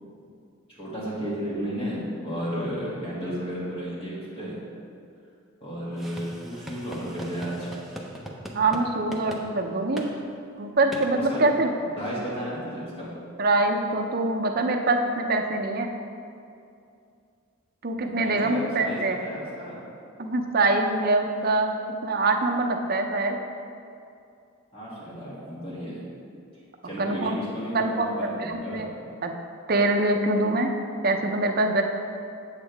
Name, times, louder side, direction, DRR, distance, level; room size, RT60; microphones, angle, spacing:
voice 1, 0.7-4.5 5.6-7.7 11.2-11.4 12.0-13.1 18.0-19.8 24.7-26.0 26.8-28.9, equal, 25° left, -7 dB, 2.2 m, -33 dB
sound 1, 6.0-8.8 9.1-9.4 10.0-10.1 10.9-11.1, equal, ahead, 0.6 m, -39 dB
voice 2, 8.5-10.0 10.6-12.0 13.4-15.9 17.8-19.2 20.2-21.7 22.0-23.4 27.0-27.3 27.7-28.9 29.2-29.3 29.7-30.7 31.0-31.8, right 2 dB, 45° right, 3 dB, 0.6 m, -24 dB
8.2 x 8.0 x 3.5 m, 2.5 s
head